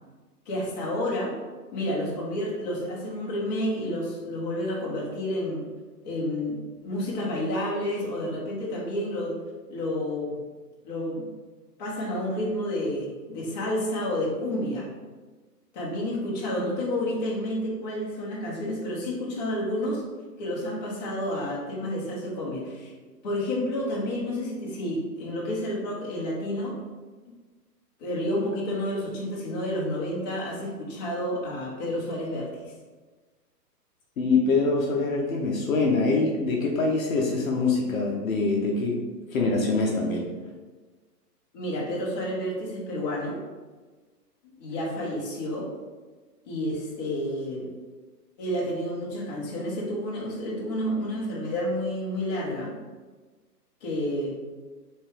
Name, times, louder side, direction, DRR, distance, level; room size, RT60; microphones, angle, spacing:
voice 1, 0.5-1.4 1.7-5.7 6.0-9.3 9.7-10.4 10.8-11.3 11.8-14.9 15.7-20.0 20.4-22.9 23.2-26.8 28.0-32.6 41.5-43.4 44.4-45.7 46.4-47.7 48.4-52.7 53.8-54.3, left 1 dB, 25° left, -5 dB, 0.9 m, -30 dB
voice 2, 34.2-39.0 39.3-40.3, left 3 dB, 55° left, -1 dB, 0.9 m, -24 dB
3.3 x 3.0 x 4.6 m, 1.3 s
hypercardioid pair, 160°, 49 cm